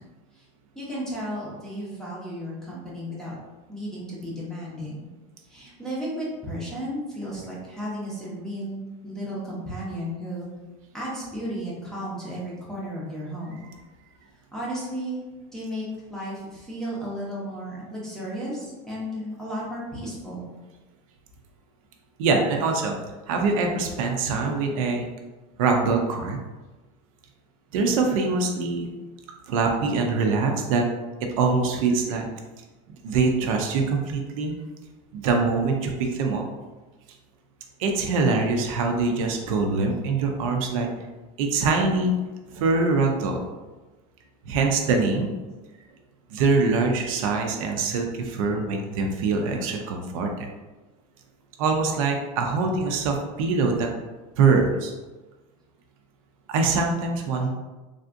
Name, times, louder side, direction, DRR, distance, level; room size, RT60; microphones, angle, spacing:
voice 1, 0.8-3.4 3.7-5.0 5.5-10.5 10.9-13.6 14.5-15.2 15.5-20.5, equal, 5° left, -7 dB, 0.6 m, -34 dB
voice 2, 22.2-23.0 23.3-25.1 25.6-26.4 27.7-28.9 29.5-30.9 31.4-32.3 33.0-34.5 35.1-36.4 37.8-40.9 41.4-42.1 42.5-43.4 44.5-45.3 46.3-50.5 51.6-53.9 54.4-54.9 56.5-57.5, right 4 dB, 70° right, 3 dB, 0.5 m, -23 dB
3.3 x 2.6 x 2.5 m, 1.2 s
supercardioid pair, 170°, 18 cm